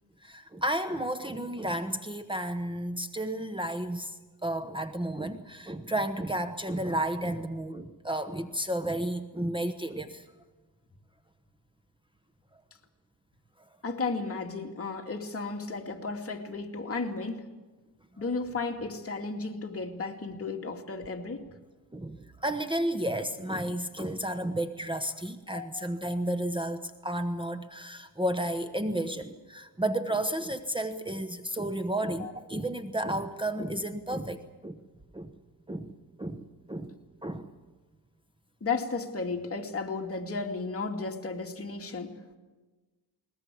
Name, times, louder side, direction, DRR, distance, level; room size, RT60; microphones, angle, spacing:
voice 1, 0.2-10.2 21.9-34.8 35.1-35.3 35.7-35.9 36.2-37.0 37.2-37.5, right 1 dB, 10° right, 9 dB, 1.1 m, -32 dB
voice 2, 13.8-17.5 18.2-21.5 25.5-25.9 32.2-32.3 38.6-42.4, left 4 dB, 35° left, 2 dB, 2.5 m, -34 dB
20.5 x 20.5 x 8.6 m, 1.3 s
cardioid pair, 95°, 39 cm